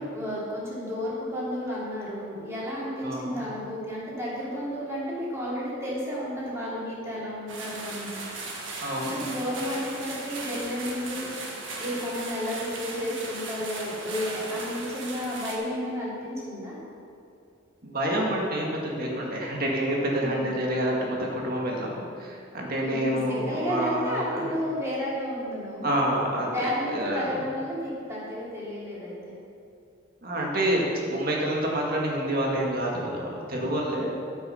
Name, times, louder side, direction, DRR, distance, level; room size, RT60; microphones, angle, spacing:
voice 1, 0.0-8.2 9.0-16.8 20.2-20.5 22.8-25.9 26.5-29.4, equal, 15° right, -7 dB, 2.9 m, -32 dB
voice 2, 3.0-3.4 8.8-9.2 17.8-24.5 25.8-26.7 26.9-27.3 30.2-34.2, right 1 dB, 50° right, -2 dB, 1.9 m, -28 dB
sound 1, 7.5-15.6, right 3 dB, 70° right, 1.6 m, -37 dB
9.2 x 8.2 x 5.7 m, 2.5 s
head